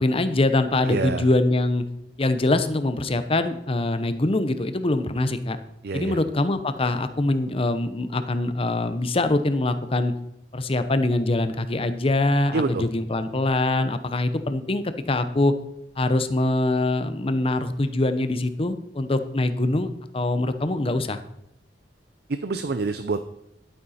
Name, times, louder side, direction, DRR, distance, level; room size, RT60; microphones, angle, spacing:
voice 1, 0.0-1.8 2.2-5.6 5.9-10.1 10.5-15.5 16.0-21.2, left 2 dB, 35° left, 11 dB, 0.7 m, -23 dB
voice 2, 0.9-1.3 5.8-6.2 12.5-12.8 22.3-23.2, right 3 dB, 65° right, 10 dB, 0.5 m, -26 dB
11.5 x 8.8 x 4.3 m, 0.79 s
head